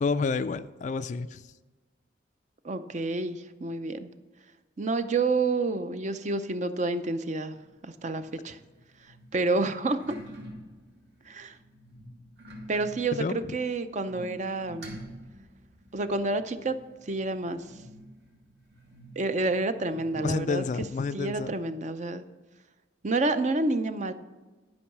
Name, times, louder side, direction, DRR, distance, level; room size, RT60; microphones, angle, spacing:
voice 1, 0.0-1.4 13.1-13.5 20.2-21.5, left 4 dB, 40° left, 13 dB, 0.3 m, -29 dB
voice 2, 2.6-4.1 4.8-7.5 7.8-8.6 9.3-10.2 11.3-11.6 12.7-15.0 15.9-16.8 17.0-17.6 19.2-20.6 21.1-22.2 23.0-24.1, right 3 dB, 40° right, 11 dB, 0.5 m, -29 dB
sound 1, 7.5-21.7, equal, 60° right, 1.9 m, -49 dB
11.5 x 5.4 x 6.0 m, 1.3 s
head